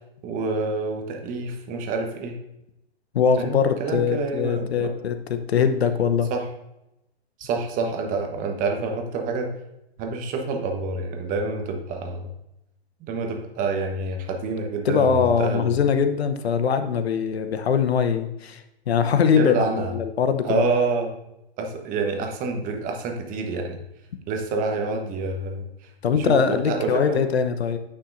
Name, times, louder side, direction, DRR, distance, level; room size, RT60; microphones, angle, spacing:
voice 1, 0.2-2.4 3.4-4.9 6.3-6.5 7.4-9.5 10.0-12.3 13.0-15.7 19.3-19.9 20.4-21.1 21.6-23.8 24.3-27.2, right 3 dB, 25° right, 3 dB, 1.1 m, -27 dB
voice 2, 3.1-6.3 14.8-20.7 26.0-27.8, left 6 dB, 75° left, 9 dB, 0.9 m, -22 dB
9.6 x 5.9 x 2.6 m, 0.87 s
hypercardioid pair, 125°, 32 cm